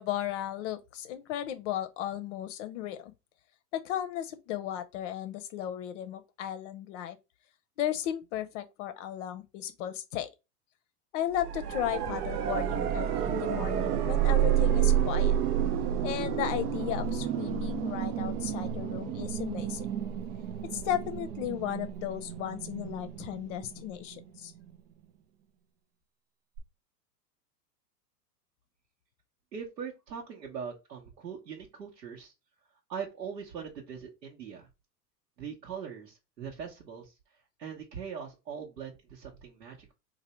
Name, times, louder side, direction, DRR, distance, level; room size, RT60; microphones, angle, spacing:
voice 1, 0.0-3.1 3.7-7.2 7.8-10.3 11.1-15.4 16.0-19.9 20.7-24.5, left 11 dB, 50° left, 0.6 m, -35 dB
sound 1, 11.3-24.2 26.6-26.7, right 9 dB, 70° right, 0.7 m, -30 dB
voice 2, 29.5-32.3 32.9-34.7 35.4-37.2 37.6-39.9, right 7 dB, 85° right, 1.2 m, -41 dB
2.7 x 2.5 x 4.3 m
hypercardioid pair, 100°, 48 cm